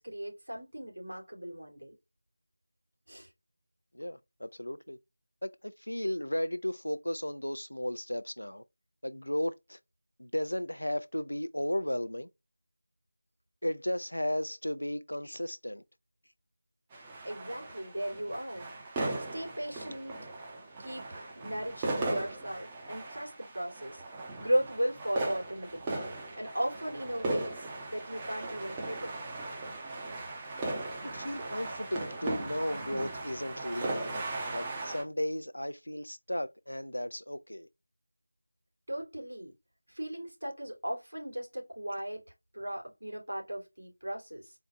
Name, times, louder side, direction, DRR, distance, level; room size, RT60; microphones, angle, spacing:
voice 1, 0.0-2.0 3.1-3.3 17.2-18.6 19.3-20.4 20.8-24.0 24.4-26.0 26.4-29.1 38.9-39.5 39.9-42.2 42.5-44.5, equal, 65° right, 2.7 m, -36 dB
voice 2, 3.9-5.0 5.4-8.6 9.0-9.8 10.2-12.3 13.6-15.8 31.0-34.2 34.5-37.7, left 1 dB, 75° left, 0.3 m, -35 dB
sound 1, 16.9-35.0, right 2 dB, 10° right, 0.7 m, -38 dB
4.3 x 2.4 x 4.1 m
figure-of-eight pair, 170°, 0 cm